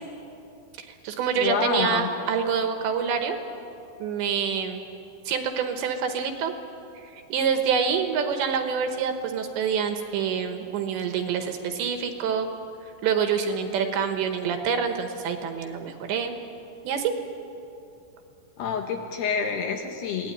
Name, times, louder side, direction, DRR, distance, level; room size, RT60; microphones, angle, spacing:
voice 1, 0.8-3.4 4.0-4.8 5.3-6.5 7.0-12.5 13.0-16.3 16.8-17.1, right 6 dB, 70° right, 6 dB, 3.3 m, -26 dB
voice 2, 1.4-2.1 18.6-20.3, left 6 dB, 65° left, 3 dB, 2.9 m, -27 dB
25.5 x 18.5 x 9.7 m, 2.8 s
omnidirectional pair, 5.8 m